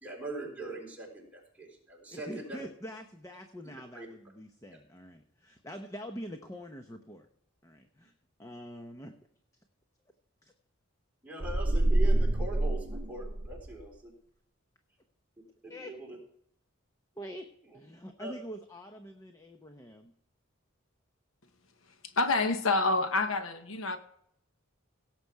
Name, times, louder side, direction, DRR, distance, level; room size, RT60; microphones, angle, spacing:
voice 1, 0.0-2.6 3.7-4.1 11.2-14.1 15.4-16.2 18.2-18.4, right 2 dB, 5° right, -2 dB, 3.6 m, -42 dB
voice 2, 2.1-7.3 7.6-8.1 8.4-9.1 10.4-10.5 15.7-16.0 17.2-17.5 17.7-20.1, equal, 15° left, 5 dB, 0.8 m, -45 dB
sound 1, 11.4-13.8, right 1 dB, 40° right, 0.8 m, -27 dB
voice 3, 22.2-24.0, left 3 dB, 75° left, 8 dB, 1.1 m, -27 dB
17.0 x 7.7 x 4.7 m, 0.71 s
head